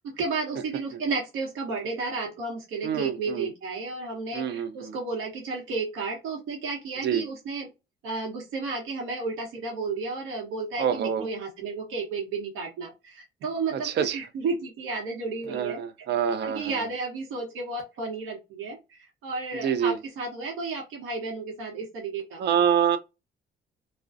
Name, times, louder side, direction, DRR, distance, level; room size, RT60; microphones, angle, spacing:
voice 1, 0.1-7.7 8.0-16.1 16.4-22.4, right 4 dB, 85° right, 0.9 m, -32 dB
voice 2, 2.8-3.5 4.3-4.9 7.0-7.2 10.8-11.3 13.7-14.2 15.5-16.8 19.6-20.0 22.4-23.0, right 8 dB, 60° right, 0.5 m, -26 dB
2.4 x 2.1 x 2.4 m
cardioid pair, 90°, 20 cm